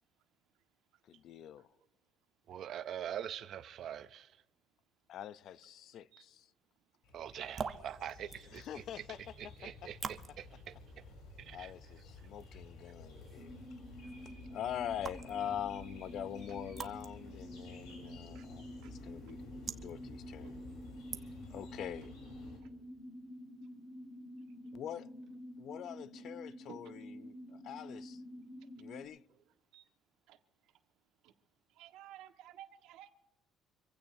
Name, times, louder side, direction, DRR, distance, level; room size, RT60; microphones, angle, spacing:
voice 1, 1.0-1.7 5.1-6.5 8.5-9.2 11.5-13.6 14.5-19.4 19.8-20.7 21.5-22.1 24.7-25.1 25.6-28.2 28.8-29.2, left 10 dB, 50° left, 0.4 m, -44 dB
voice 2, 2.5-4.4 7.1-10.7 11.5-11.7 14.0-14.1, right 10 dB, 45° right, 0.4 m, -44 dB
sound 1, 7.0-22.6, left 2 dB, 75° left, 6.8 m, -53 dB
sound 2, 7.3-21.7, right 6 dB, 25° right, 0.9 m, -50 dB
sound 3, 13.4-29.1, equal, 25° left, 3.8 m, -49 dB
voice 3, 31.7-33.1, right 12 dB, 80° right, 1.4 m, -53 dB
26.0 x 16.0 x 2.6 m
cardioid pair, 170°, 0 cm